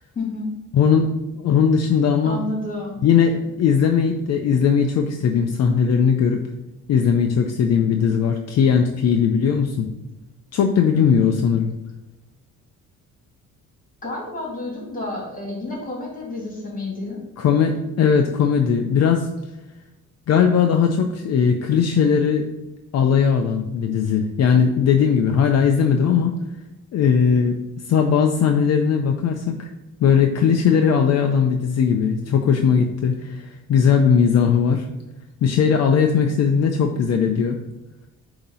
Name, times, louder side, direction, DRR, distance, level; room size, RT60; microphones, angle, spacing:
voice 1, 0.2-0.5 2.2-3.0 14.0-17.2, left 2 dB, 25° left, -2 dB, 2.2 m, -30 dB
voice 2, 0.7-1.1 1.3-2.4 3.0-3.3 3.6-6.4 6.9-9.9 10.5-11.7 17.4-19.3 20.3-22.4 22.9-26.4 26.9-27.6 27.9-29.7 30.0-34.8 35.4-37.6, left 7 dB, 55° left, 4 dB, 0.6 m, -18 dB
8.7 x 2.9 x 5.4 m, 0.98 s
cardioid pair, 155°, 32 cm